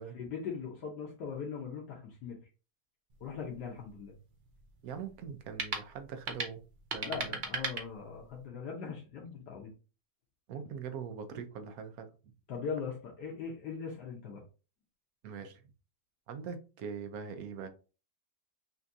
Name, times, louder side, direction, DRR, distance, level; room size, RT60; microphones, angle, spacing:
voice 1, 0.1-2.4 3.2-4.1 7.0-9.7 12.5-14.4, left 6 dB, 85° left, 1.5 m, -40 dB
sound 1, 3.1-8.5, right 4 dB, 50° right, 0.6 m, -40 dB
voice 2, 4.8-6.6 6.9-7.4 10.5-12.1 15.2-15.6 16.3-17.7, right 6 dB, 70° right, 1.1 m, -42 dB
5.8 x 2.6 x 2.6 m
omnidirectional pair, 1.8 m